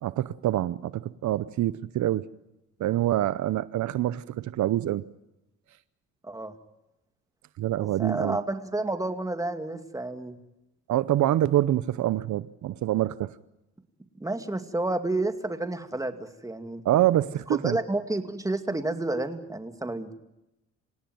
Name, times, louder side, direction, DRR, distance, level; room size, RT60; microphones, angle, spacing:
voice 1, 0.0-2.3 2.8-5.0 7.6-8.4 10.9-13.3 16.8-17.8, right 13 dB, 70° right, 17 dB, 0.8 m, -26 dB
voice 2, 8.0-10.4 14.1-16.8 17.5-20.1, right 2 dB, 10° right, 8 dB, 2.4 m, -30 dB
26.5 x 17.5 x 9.4 m, 0.93 s
cardioid pair, 90°, 30 cm